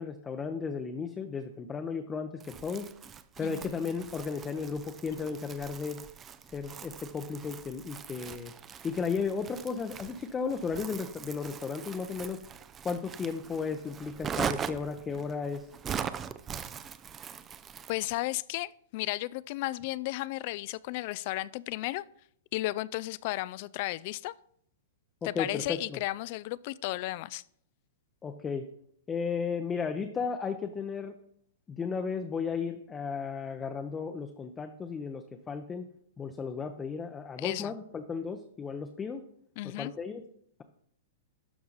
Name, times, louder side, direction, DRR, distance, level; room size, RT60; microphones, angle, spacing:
voice 1, 0.0-2.9 3.4-6.0 6.5-8.5 8.8-12.4 12.8-15.7 25.2-26.0 28.2-28.7 29.1-31.1 31.7-35.9 36.2-39.2 39.8-40.2, left 5 dB, 20° left, 6 dB, 0.7 m, -34 dB
Crumpling crinkling, 2.4-18.2, right 7 dB, 20° right, 0.5 m, -41 dB
voice 2, 3.4-3.7 17.9-22.0 22.5-24.3 25.2-27.4 37.4-37.7 39.6-39.9, left 18 dB, 50° left, 20 dB, 0.3 m, -34 dB
12.0 x 4.7 x 4.0 m, 0.69 s
hypercardioid pair, 125°, 0 cm